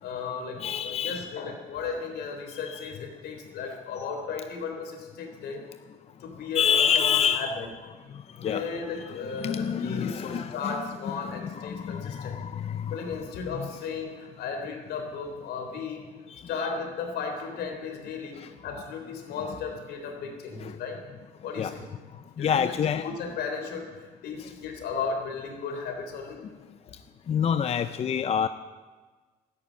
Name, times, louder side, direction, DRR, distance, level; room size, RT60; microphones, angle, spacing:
voice 1, 0.0-5.6 6.2-7.7 8.4-12.4 12.9-16.1 16.5-21.0 21.4-21.8 22.4-26.5, left 5 dB, 75° left, 3 dB, 3.6 m, -35 dB
voice 2, 0.6-1.3 2.7-2.9 6.5-7.5 8.4-8.7 9.1-10.8 11.2-13.1 13.6-13.7 16.3-16.4 18.4-18.5 20.6-20.8 21.6-21.7 22.4-23.1 27.3-28.5, left 8 dB, 40° left, 11 dB, 0.5 m, -27 dB
13.0 x 10.5 x 8.7 m, 1.3 s
cardioid pair, 110°, 17 cm